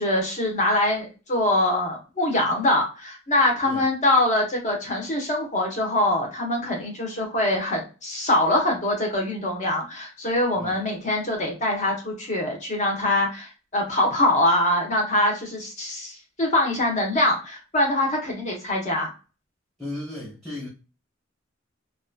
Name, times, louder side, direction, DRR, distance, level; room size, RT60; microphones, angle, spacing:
voice 1, 0.0-19.1, left 1 dB, 40° left, 1.0 m, -23 dB
voice 2, 19.8-20.7, left 1 dB, ahead, 0.9 m, -35 dB
2.8 x 2.4 x 2.2 m
head